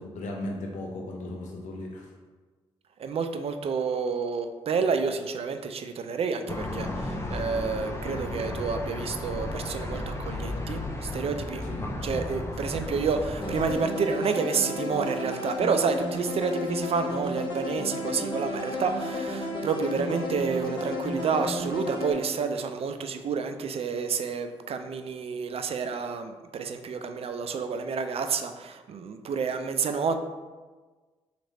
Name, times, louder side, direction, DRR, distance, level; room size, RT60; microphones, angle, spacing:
voice 1, 0.0-2.1 11.6-11.9, left 1 dB, 65° left, -1 dB, 0.6 m, -36 dB
voice 2, 3.0-30.2, right 5 dB, 45° right, 8 dB, 0.4 m, -29 dB
sound 1, 6.5-13.7, left 2 dB, 20° left, 0.7 m, -34 dB
sound 2, 13.4-22.1, left 1 dB, 35° left, 1.0 m, -32 dB
3.1 x 2.5 x 4.1 m, 1.3 s
hypercardioid pair, 40°, 13 cm